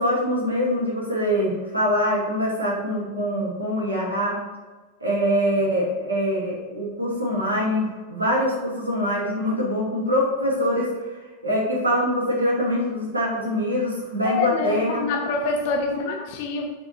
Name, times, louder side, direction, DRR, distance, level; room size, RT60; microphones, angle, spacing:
voice 1, 0.0-4.4 5.0-10.9 11.4-15.0 15.9-16.1, equal, 80° right, -4 dB, 2.3 m, -24 dB
voice 2, 14.2-16.7, left 4 dB, 50° left, 2 dB, 1.3 m, -26 dB
8.0 x 3.9 x 4.4 m, 1.3 s
figure-of-eight pair, 90°, 0 cm